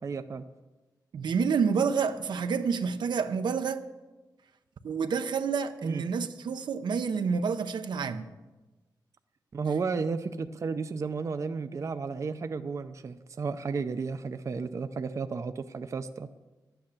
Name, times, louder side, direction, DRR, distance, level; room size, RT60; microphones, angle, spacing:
voice 1, 0.0-0.4 5.8-6.0 9.5-16.3, right 5 dB, 45° right, 0.5 m, -33 dB
voice 2, 1.1-3.8 4.8-8.3, right 6 dB, 85° right, 0.7 m, -28 dB
11.5 x 9.1 x 7.1 m
wide cardioid pair, 130°, 8 cm